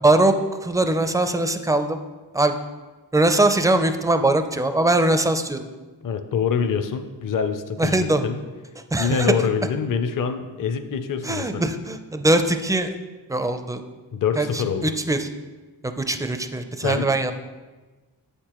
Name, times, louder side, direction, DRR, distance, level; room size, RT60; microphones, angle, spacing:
voice 1, 0.0-2.0 2.3-2.6 3.1-5.6 7.8-8.2 8.9-9.3 11.2-12.9 13.3-13.8 14.4-15.3 16.0-17.3, right 2 dB, 10° right, 8 dB, 0.4 m, -21 dB
voice 2, 6.0-8.4 9.0-11.6 14.1-14.9 16.8-17.1, left 6 dB, 45° left, 8 dB, 0.5 m, -25 dB
7.8 x 6.7 x 3.0 m, 1.3 s
cardioid pair, 75°, 45 cm